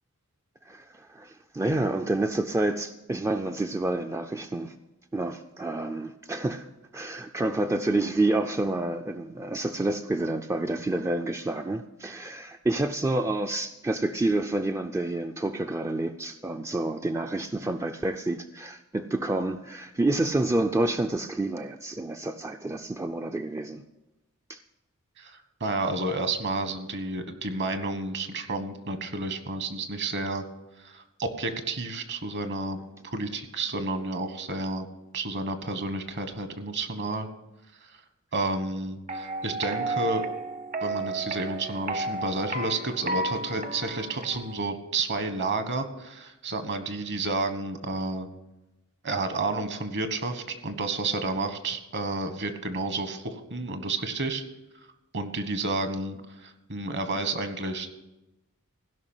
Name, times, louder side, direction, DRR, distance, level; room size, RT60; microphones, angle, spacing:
voice 1, 0.7-4.7 5.1-6.7 6.9-23.8 24.5-24.6, right 2 dB, 15° right, 6 dB, 0.4 m, -28 dB
voice 2, 25.2-30.4 30.8-32.8 33.1-34.9 35.1-37.3 37.8-38.0 38.3-40.2 40.8-48.3 49.0-54.4 54.7-54.9 55.1-58.0, right 3 dB, 50° right, 9 dB, 1.4 m, -31 dB
sound 1, 39.1-44.7, right 2 dB, 35° right, 0.8 m, -33 dB
16.0 x 5.8 x 9.0 m, 0.99 s
head